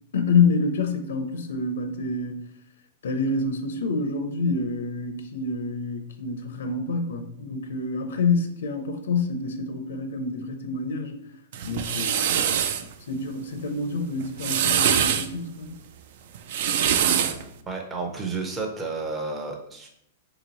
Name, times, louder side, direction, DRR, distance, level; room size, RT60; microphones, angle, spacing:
voice 1, 0.1-2.4 3.0-11.2 11.6-12.7 13.1-15.7, left 4 dB, 80° left, 8 dB, 0.6 m, -27 dB
sound 1, 11.5-12.8 14.2-15.3 16.3-17.4, right 9 dB, 55° right, 0.3 m, -23 dB
voice 2, 17.7-19.9, right 3 dB, 15° right, 1 dB, 0.6 m, -31 dB
3.4 x 2.9 x 4.0 m, 0.73 s
hypercardioid pair, 150°, 0 cm